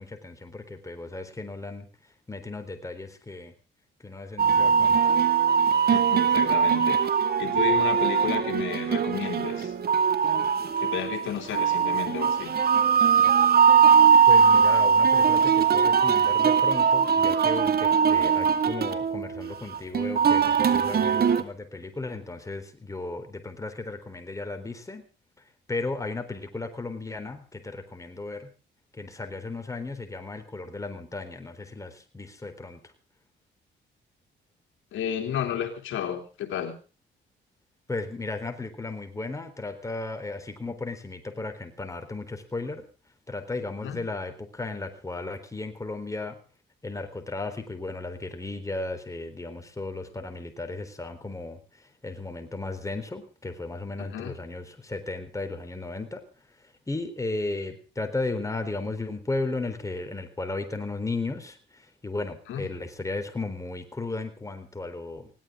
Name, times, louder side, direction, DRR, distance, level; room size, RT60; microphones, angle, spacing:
voice 1, 0.0-1.9 2.3-3.5 4.0-5.1 14.2-25.0 25.7-28.5 28.9-32.9 37.9-42.8 43.3-46.4 46.8-65.3, left 3 dB, 15° left, 6 dB, 3.9 m, -35 dB
sound 1, 4.4-21.4, right 7 dB, 50° right, 2.3 m, -21 dB
voice 2, 5.9-7.1 7.4-9.7 10.8-12.5 34.9-36.7 43.8-44.0 54.0-54.3 62.5-62.6, left 9 dB, 80° left, 5 dB, 3.0 m, -32 dB
20.5 x 17.5 x 3.7 m, 0.35 s
cardioid pair, 90°, 20 cm